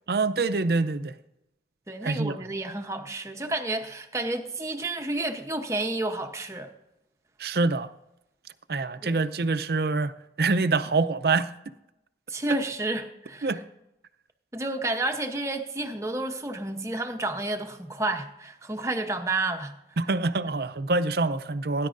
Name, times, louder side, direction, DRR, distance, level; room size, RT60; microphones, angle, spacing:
voice 1, 0.1-1.1 2.0-2.4 7.4-7.9 8.7-10.1 10.4-11.5 12.5-12.6 13.4-13.6 20.0-21.9, right 3 dB, 60° right, 0.5 m, -25 dB
voice 2, 1.9-6.7 9.0-9.2 12.3-13.5 14.5-19.8, right 2 dB, 15° right, 0.8 m, -30 dB
18.5 x 10.5 x 2.6 m
head